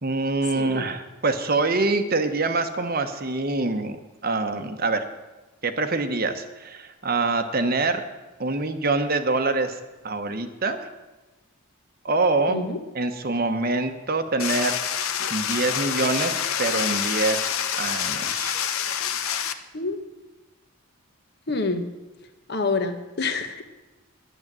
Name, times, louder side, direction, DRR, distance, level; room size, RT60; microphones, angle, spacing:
voice 1, 0.0-4.0 4.2-5.0 5.6-8.0 8.4-9.8 10.0-10.9 12.0-12.6 12.9-18.7, right 3 dB, 40° right, 8 dB, 1.0 m, -25 dB
voice 2, 0.5-0.9 12.5-12.8 19.7-20.0 21.5-21.8 22.5-23.6, left 3 dB, 45° left, 8 dB, 1.1 m, -27 dB
sound 1, 14.4-19.5, left 8 dB, 70° left, 0.8 m, -27 dB
11.0 x 10.0 x 7.5 m, 1.1 s
head